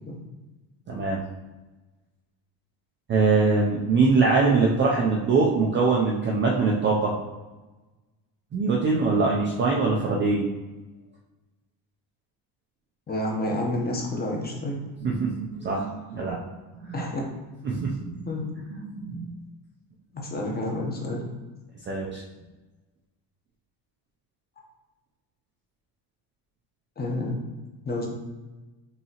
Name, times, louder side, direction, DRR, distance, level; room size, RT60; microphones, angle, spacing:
voice 1, 0.9-1.2 3.1-7.1 8.5-10.5 15.0-16.4 16.8-17.0 17.6-18.4 18.7-19.4 21.9-22.2, right 4 dB, 25° right, -3 dB, 0.3 m, -23 dB
voice 2, 13.1-14.8 16.9-17.2 18.2-18.4 20.1-21.2 27.0-27.4 27.8-28.1, left 1 dB, 20° left, 0 dB, 0.7 m, -29 dB
5.5 x 2.8 x 2.8 m, 1.2 s
cardioid pair, 150°, 47 cm